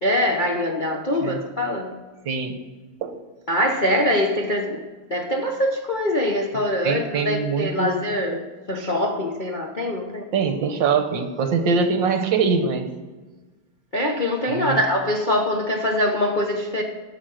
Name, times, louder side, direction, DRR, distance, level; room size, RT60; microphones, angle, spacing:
voice 1, 0.0-1.9 3.5-4.8 5.1-8.4 8.7-10.2 13.9-16.8, left 1 dB, 40° left, 0 dB, 0.7 m, -23 dB
voice 2, 2.2-2.6 3.0-3.2 6.8-8.0 8.3-8.4 10.3-12.9 14.5-14.8, right 5 dB, 65° right, 7 dB, 1.6 m, -23 dB
12.0 x 7.5 x 6.4 m, 1.3 s
omnidirectional pair, 2.4 m